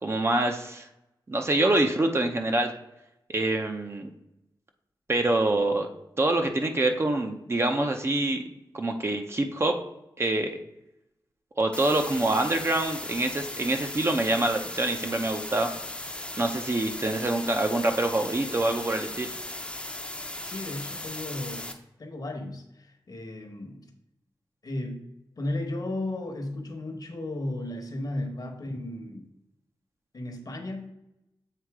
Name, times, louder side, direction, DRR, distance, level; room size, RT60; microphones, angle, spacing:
voice 1, 0.0-0.9 1.3-2.7 3.3-4.1 5.1-5.9 6.2-8.4 8.7-9.8 10.2-10.6 11.6-15.7 16.4-19.3, right 2 dB, 30° right, 5 dB, 0.6 m, -25 dB
sound 1, 11.7-21.7, left 1 dB, 15° left, 0.6 m, -37 dB
voice 2, 20.4-21.7 22.0-23.9 24.6-25.0 25.4-29.3 30.1-30.9, left 1 dB, 50° left, 3 dB, 1.0 m, -34 dB
7.6 x 2.7 x 4.7 m, 0.87 s
wide cardioid pair, 105°, 8 cm